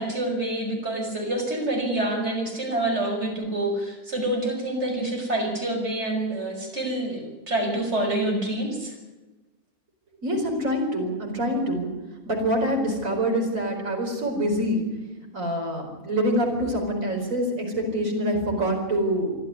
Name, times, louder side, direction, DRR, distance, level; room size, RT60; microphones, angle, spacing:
voice 1, 0.0-8.9, right 1 dB, 50° right, 1 dB, 6.1 m, -27 dB
voice 2, 10.2-11.9 12.3-14.8 15.3-19.4, equal, 65° right, 0 dB, 5.2 m, -25 dB
24.5 x 14.0 x 9.8 m, 1.1 s
omnidirectional pair, 1.5 m